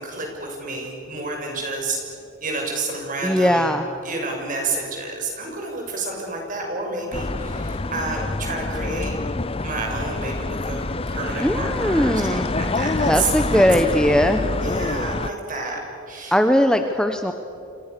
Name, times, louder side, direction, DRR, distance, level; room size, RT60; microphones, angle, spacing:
voice 1, 0.0-2.0 2.4-3.8 4.0-9.2 9.6-13.6 14.6-15.8 16.1-16.4, right 3 dB, 40° right, 1 dB, 6.4 m, -30 dB
voice 2, 3.2-3.8 11.4-12.4 13.1-14.4 16.3-17.3, equal, 5° left, 6 dB, 1.0 m, -19 dB
sound 1, 7.1-15.3, left 2 dB, 25° left, 0.7 m, -26 dB
30.0 x 25.5 x 6.9 m, 2.8 s
head